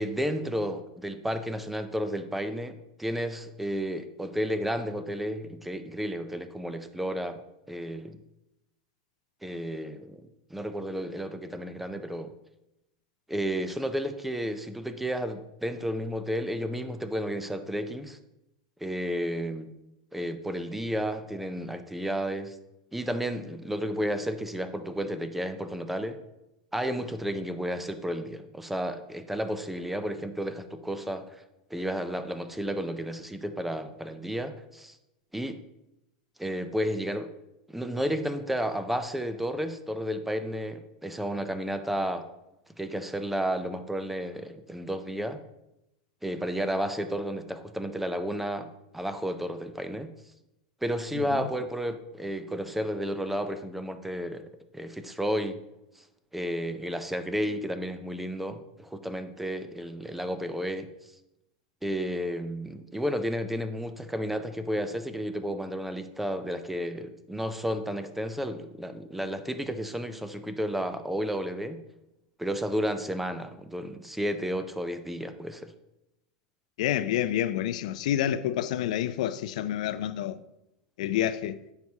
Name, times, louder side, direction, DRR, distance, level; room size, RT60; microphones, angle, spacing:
voice 1, 0.0-7.4 7.7-8.2 9.4-10.2 10.5-12.3 13.3-18.2 18.8-19.7 20.1-22.6 22.9-26.2 26.7-31.4 31.7-35.0 35.3-35.6 36.4-37.3 37.7-42.3 42.8-45.4 46.2-48.7 48.9-50.1 50.8-54.4 54.7-55.6 56.0-56.1 56.3-60.9 61.8-71.8 72.4-75.7, equal, 5° right, 0.4 m, -32 dB
voice 2, 51.1-51.5 76.8-80.4 81.0-81.6, left 11 dB, 75° left, 0.3 m, -28 dB
8.9 x 4.8 x 2.8 m
supercardioid pair, 130°, 4 cm